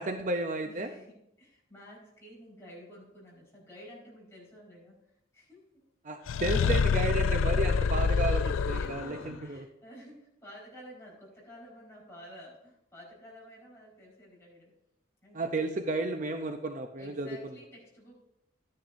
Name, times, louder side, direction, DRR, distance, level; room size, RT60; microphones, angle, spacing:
voice 1, 0.0-0.9 6.0-9.6 15.3-17.5, right 2 dB, 40° right, 5 dB, 0.6 m, -33 dB
voice 2, 0.6-5.0 5.3-5.8 8.4-14.7 15.2-15.7 17.0-18.1, equal, 15° left, -5 dB, 4.4 m, -51 dB
sound 1, 6.3-9.3, left 5 dB, 90° left, 0.4 m, -26 dB
13.0 x 10.0 x 2.6 m, 0.81 s
head